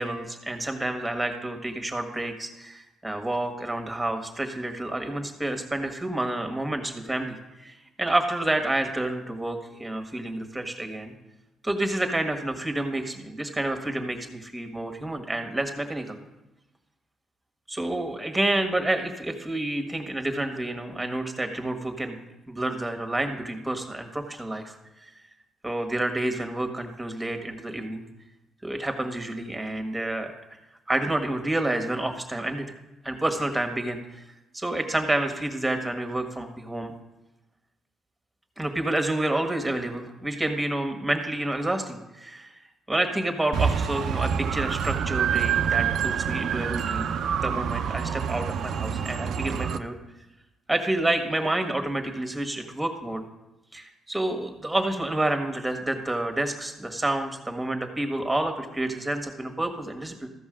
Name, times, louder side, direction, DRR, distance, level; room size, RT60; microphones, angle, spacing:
voice 1, 0.0-11.1 11.6-16.2 17.7-22.2 22.5-24.7 25.6-28.0 28.6-30.3 30.9-32.7 33.0-34.2 34.5-36.9 38.6-42.6 42.9-47.1 47.4-49.9 50.7-53.2 53.7-60.3, right 1 dB, 10° right, 5 dB, 1.6 m, -29 dB
sound 1, 43.5-49.8, right 7 dB, 70° right, 0.6 m, -27 dB
14.5 x 5.4 x 6.4 m, 0.98 s
cardioid pair, 90°, 0 cm